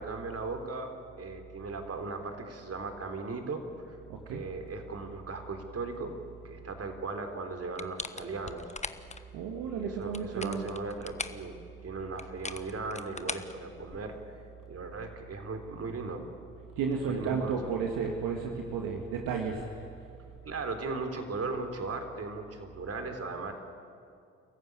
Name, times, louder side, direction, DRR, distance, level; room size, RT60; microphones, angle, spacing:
voice 1, 0.0-4.0 4.3-6.2 6.4-8.7 9.6-14.4 14.7-16.2 17.0-17.6 20.5-23.5, right 3 dB, 45° right, 6 dB, 3.8 m, -37 dB
voice 2, 4.1-4.4 9.3-10.6 16.8-19.9, right 6 dB, 75° right, 2 dB, 2.0 m, -33 dB
sound 1, 7.8-9.2 10.0-11.5 12.2-14.2, left 3 dB, 20° left, 1.3 m, -40 dB
28.5 x 15.0 x 9.8 m, 2.4 s
hypercardioid pair, 45°, 34 cm